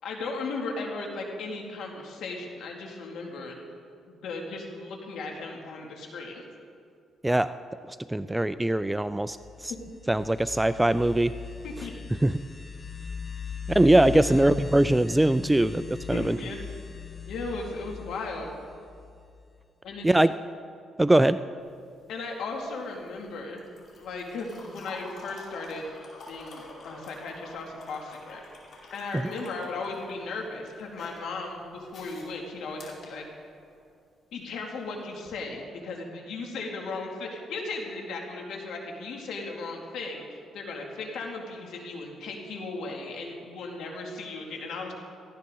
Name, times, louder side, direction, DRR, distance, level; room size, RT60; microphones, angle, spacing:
voice 1, 0.0-3.5 4.1-6.4 9.7-9.8 11.6-11.9 14.0-14.4 16.1-16.6 17.3-18.5 19.8-20.1 22.1-23.6 24.0-25.9 26.3-28.4 28.9-33.2 34.3-44.9, left 3 dB, 80° left, 0 dB, 2.5 m, -36 dB
voice 2, 7.9-9.7 10.1-11.3 12.2-12.3 13.7-16.4 20.0-20.3 21.0-21.4, right 1 dB, 10° right, 13 dB, 0.3 m, -22 dB
sound 1, 9.1-19.6, left 6 dB, 30° left, 0.8 m, -39 dB
sound 2, 21.6-33.9 35.1-35.3, left 2 dB, 60° left, 4.4 m, -48 dB
18.0 x 15.0 x 3.9 m, 2.3 s
cardioid pair, 90°, 0 cm